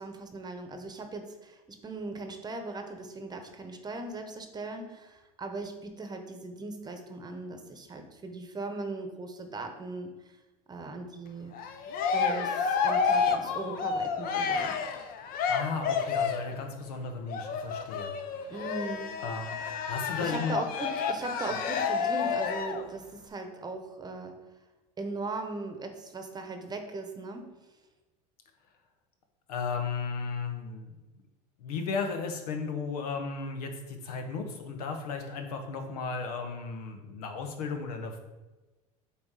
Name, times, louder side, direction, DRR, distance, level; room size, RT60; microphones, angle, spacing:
voice 1, 0.0-10.1 10.7-11.5 12.1-14.8 18.5-19.2 20.2-24.4 25.0-27.5, right 3 dB, 20° right, 5 dB, 1.0 m, -39 dB
Cheering, 11.5-16.5 17.3-22.9, left 6 dB, 50° left, 0.8 m, -30 dB
voice 2, 15.5-18.1 18.4-18.5 19.2-20.6 29.5-30.9 31.6-38.2, left 4 dB, 80° left, 5 dB, 1.1 m, -35 dB
8.4 x 3.1 x 4.9 m, 1.1 s
supercardioid pair, 100°, 19 cm